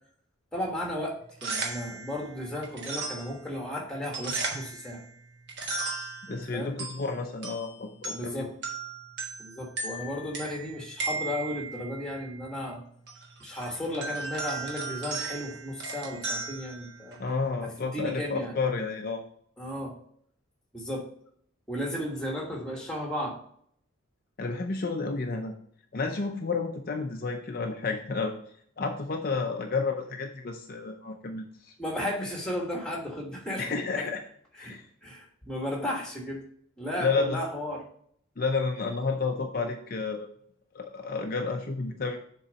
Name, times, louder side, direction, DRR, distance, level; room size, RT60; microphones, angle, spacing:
voice 1, 0.5-5.0 6.3-6.7 8.1-8.5 9.4-12.8 13.4-17.2 17.8-18.5 19.6-19.9 20.7-21.1 21.7-23.4 31.8-34.1 34.6-36.4 36.8-37.8, left 1 dB, 5° left, -1 dB, 1.4 m, -34 dB
fun with fisher price xlophone, 1.2-17.4, right 3 dB, 50° right, 1.3 m, -37 dB
voice 2, 6.2-8.5 17.2-19.2 24.4-25.5 25.9-28.3 28.8-31.7 33.6-34.2 34.6-34.9 37.0-37.4 38.4-40.3 40.7-42.2, left 4 dB, 45° left, 3 dB, 0.5 m, -31 dB
7.0 x 3.9 x 5.1 m, 0.64 s
head